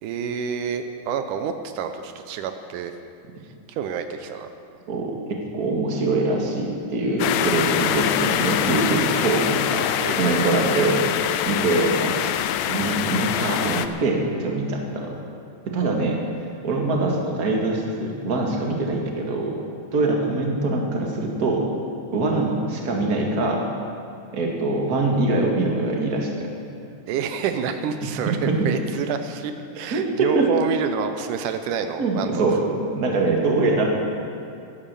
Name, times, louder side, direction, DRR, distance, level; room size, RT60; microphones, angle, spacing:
voice 1, 0.0-2.9 3.7-4.5 10.0-10.4 27.1-32.3, right 7 dB, 85° right, 8 dB, 2.3 m, -28 dB
voice 2, 4.9-12.3 12.6-15.1 15.7-16.2 16.6-19.5 19.9-21.6 22.1-23.6 24.3-26.5 28.3-28.7 29.9-30.5 32.0-33.8, right 2 dB, 35° right, 0 dB, 2.0 m, -23 dB
sound 1, 7.2-13.9, left 10 dB, 90° left, 2.2 m, -24 dB
14.5 x 11.0 x 6.8 m, 2.6 s
omnidirectional pair, 3.6 m